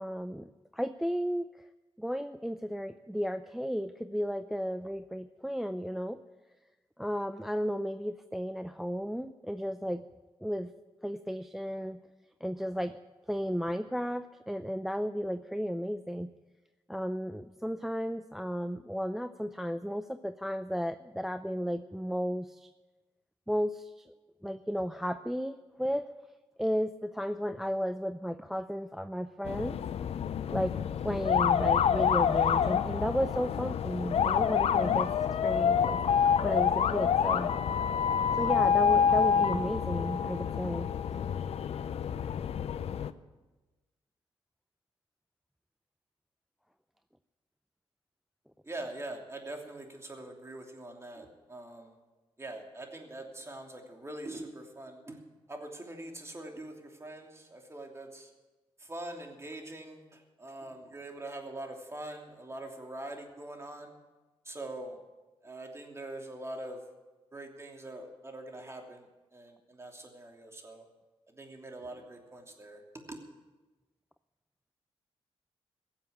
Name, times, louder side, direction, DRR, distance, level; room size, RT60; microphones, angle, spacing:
voice 1, 0.0-1.7 2.0-6.2 7.0-10.0 10.4-10.7 11.0-12.0 12.4-13.0 13.3-16.3 16.9-22.7 23.5-24.1 24.4-26.1 26.6-29.8 30.5-35.1 35.4-36.0 36.4-37.5 38.3-40.9, equal, 5° right, 11 dB, 0.5 m, -34 dB
sound 1, 29.5-43.1, left 7 dB, 70° left, 0.6 m, -27 dB
voice 2, 48.6-52.0 52.4-55.2 55.5-58.3 58.8-63.9 64.4-65.0 65.4-66.9 67.3-70.8 71.3-73.2, right 1 dB, 25° right, 2 dB, 2.9 m, -43 dB
16.5 x 7.4 x 8.6 m, 1.2 s
cardioid pair, 70°, 11 cm